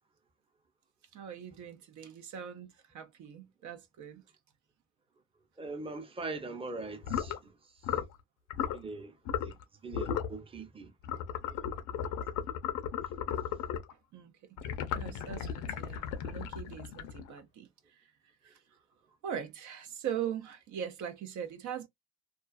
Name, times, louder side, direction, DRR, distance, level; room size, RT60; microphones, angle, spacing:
voice 1, 1.1-4.2 13.9-14.3 14.9-18.1 18.4-18.8 19.2-21.9, right 9 dB, 70° right, 0.6 m, -41 dB
voice 2, 5.6-8.0 8.7-10.9 11.3-11.6, right 3 dB, 20° right, 0.6 m, -42 dB
sound 1, 7.0-7.4 7.8-8.2 8.5-8.8 9.3-9.6 9.9-10.4 11.0-13.9 14.6-17.4, left 8 dB, 90° left, 0.5 m, -35 dB
2.3 x 2.3 x 2.3 m
cardioid pair, 90°, 30 cm